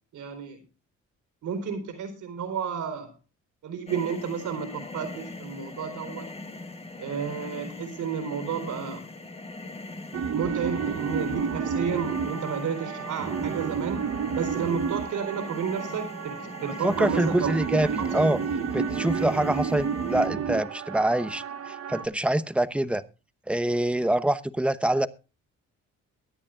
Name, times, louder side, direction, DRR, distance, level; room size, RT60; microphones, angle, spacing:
voice 1, 0.1-0.6 1.4-3.1 3.6-6.3 7.0-9.0 10.3-14.1 14.3-17.5 18.0-18.2, right 6 dB, 75° right, 8 dB, 4.2 m, -32 dB
sound 1, 3.9-20.3, left 2 dB, 20° left, 1.5 m, -41 dB
sound 2, 10.1-22.0, right 6 dB, 50° right, 1.1 m, -31 dB
voice 2, 16.8-18.4 18.7-23.0 23.5-25.1, right 1 dB, 5° right, 13 dB, 0.8 m, -25 dB
22.5 x 9.5 x 2.5 m, 0.32 s
cardioid pair, 90°, 30 cm